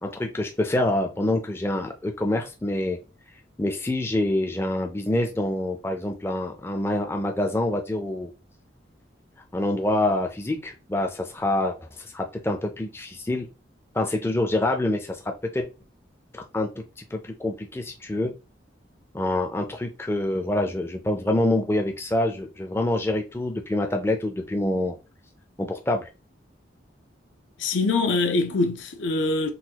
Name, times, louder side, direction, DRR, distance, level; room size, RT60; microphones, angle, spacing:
voice 1, 0.0-3.0 3.6-8.3 9.5-13.5 13.9-15.7 16.3-16.7 17.1-18.3 19.1-24.9 25.6-26.1, left 1 dB, 15° left, 0.4 m, -26 dB
voice 2, 27.6-29.5, left 3 dB, 80° left, 0.6 m, -23 dB
3.9 x 2.2 x 2.8 m
head